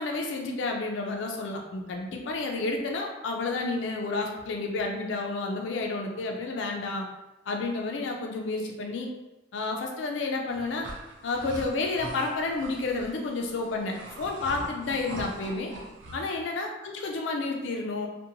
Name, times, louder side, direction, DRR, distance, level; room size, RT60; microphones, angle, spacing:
voice 1, 0.0-7.1 7.5-9.1 9.5-10.9 11.2-15.7 16.1-18.1, left 3 dB, 70° left, 1 dB, 0.4 m, -30 dB
sound 1, 10.5-16.2, right 2 dB, 70° right, 0.4 m, -42 dB
2.7 x 2.1 x 2.5 m, 1.0 s
head